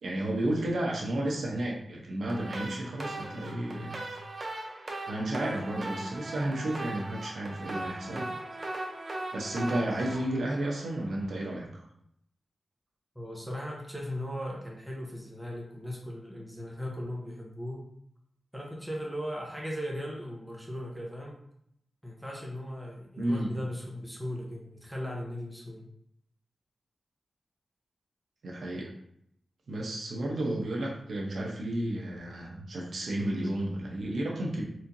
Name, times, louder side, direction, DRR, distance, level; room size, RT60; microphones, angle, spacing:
voice 1, 0.0-4.0 5.1-8.3 9.3-11.8 23.2-23.5 28.4-28.9 29.7-34.6, right 1 dB, 80° right, -2 dB, 0.8 m, -32 dB
sound 1, 2.3-11.4, right 2 dB, 40° right, 0.7 m, -39 dB
voice 2, 13.1-17.9 18.5-21.4 22.0-25.9 30.4-30.6, equal, ahead, -2 dB, 0.8 m, -38 dB
4.3 x 2.6 x 2.7 m, 0.72 s
wide cardioid pair, 115°, 0 cm